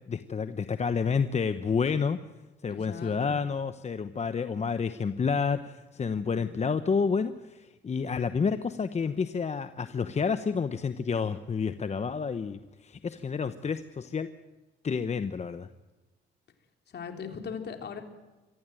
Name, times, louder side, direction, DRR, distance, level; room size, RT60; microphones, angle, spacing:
voice 1, 0.1-2.2 2.6-14.3 14.8-15.7, left 5 dB, 35° left, 11 dB, 1.0 m, -29 dB
voice 2, 2.7-3.4 6.3-6.6 16.9-18.0, left 6 dB, 55° left, 5 dB, 3.6 m, -39 dB
24.0 x 15.0 x 9.1 m, 1.2 s
cardioid pair, 90°, 20 cm